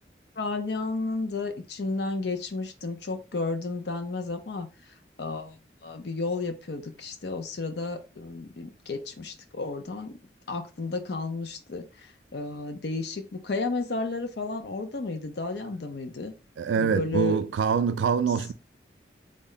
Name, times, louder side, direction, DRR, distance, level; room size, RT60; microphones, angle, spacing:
voice 1, 0.4-10.2 10.5-16.3 16.7-17.4, left 3 dB, 65° left, 0.6 m, -32 dB
voice 2, 16.6-18.5, right 6 dB, 90° right, 0.3 m, -24 dB
3.3 x 2.1 x 3.8 m
head